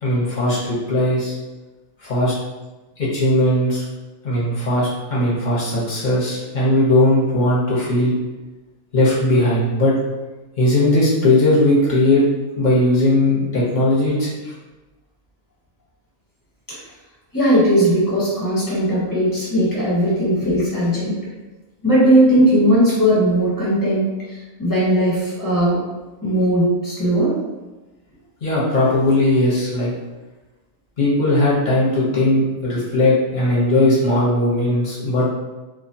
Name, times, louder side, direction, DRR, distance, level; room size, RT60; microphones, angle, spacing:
voice 1, 0.0-1.3 2.0-2.3 3.1-3.8 4.2-8.1 8.9-9.9 10.6-12.2 12.6-14.5 28.4-29.9 31.0-35.3, left 1 dB, 45° left, -7 dB, 0.7 m, -18 dB
voice 2, 17.3-21.2 21.8-25.8 26.2-27.3, right 1 dB, 15° left, -9 dB, 0.9 m, -18 dB
2.4 x 2.2 x 2.6 m, 1.2 s
omnidirectional pair, 1.4 m